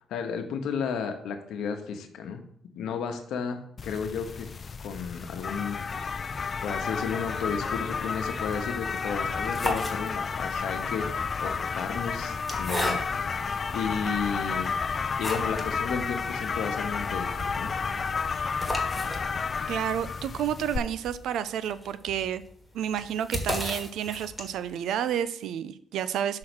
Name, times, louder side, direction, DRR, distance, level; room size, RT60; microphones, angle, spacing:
voice 1, 0.0-2.4 2.7-4.5 4.8-6.1 6.6-14.8 15.2-17.8, left 6 dB, 80° left, 6 dB, 1.0 m, -33 dB
sound 1, 3.8-20.8, left 5 dB, 40° left, 0.4 m, -31 dB
sound 2, 9.4-10.5 11.3-13.4 14.0-14.1 14.6-15.7 16.1-16.2 16.4-16.5 16.9-24.8, left 1 dB, ahead, 1.7 m, -36 dB
voice 2, 19.7-22.4 22.7-26.4, right 9 dB, 80° right, 14 dB, 0.4 m, -30 dB
6.2 x 3.8 x 6.2 m, 0.66 s
cardioid pair, 90°, 0 cm